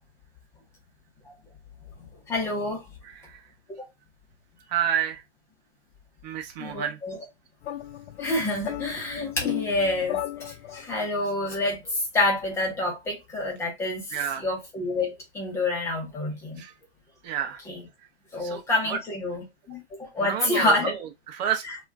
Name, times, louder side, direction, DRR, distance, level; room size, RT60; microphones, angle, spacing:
voice 1, 2.0-2.8 3.8-3.9 6.6-7.2 8.2-16.6 17.7-17.8 18.3-20.9 21.7-21.8, left 2 dB, 10° left, 0.5 m, -28 dB
voice 2, 3.0-3.4 4.7-5.2 6.2-7.0 14.1-14.4 16.6-16.7 17.2-17.6 18.4-18.6 18.9-19.0 20.2-21.1 21.4-21.6, right 9 dB, 40° right, 0.7 m, -29 dB
sound 1, 7.6-11.1, left 11 dB, 75° left, 0.5 m, -35 dB
2.3 x 2.1 x 3.4 m
hypercardioid pair, 135°, 34 cm